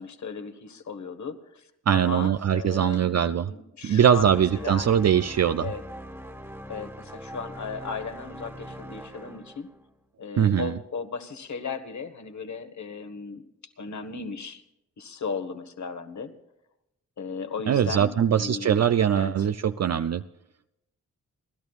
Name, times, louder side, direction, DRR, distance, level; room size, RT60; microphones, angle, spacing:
voice 1, 0.0-5.1 5.6-5.8 6.7-9.7 10.2-14.6 15.0-16.3 17.2-19.3, left 5 dB, 55° left, 7 dB, 1.4 m, -36 dB
voice 2, 1.9-3.5 3.8-5.7 10.4-10.7 17.7-20.2, right 9 dB, 50° right, 11 dB, 0.5 m, -22 dB
sound 1, 4.1-10.0, equal, 5° right, 1.6 m, -41 dB
30.0 x 12.0 x 2.4 m, 0.87 s
cardioid pair, 70°, 34 cm